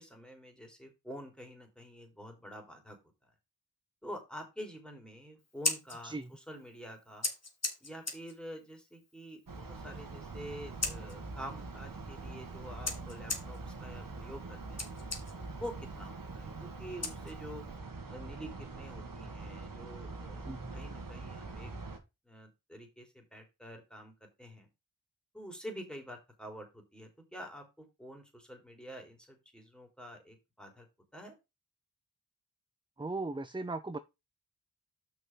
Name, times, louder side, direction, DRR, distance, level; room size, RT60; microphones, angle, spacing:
voice 1, 0.0-3.0 4.0-7.3 7.8-14.8 15.5-17.7 18.1-21.7 22.3-24.7 25.3-30.9 31.1-31.4, equal, ahead, 3.6 m, -47 dB
Scissors, 5.4-17.8, left 3 dB, 45° left, 2.2 m, -42 dB
sound 1, 9.5-22.0, right 3 dB, 65° right, 1.9 m, -44 dB
voice 2, 20.4-20.7 33.0-34.0, right 3 dB, 15° right, 0.6 m, -38 dB
6.0 x 5.5 x 6.1 m
cardioid pair, 50°, 37 cm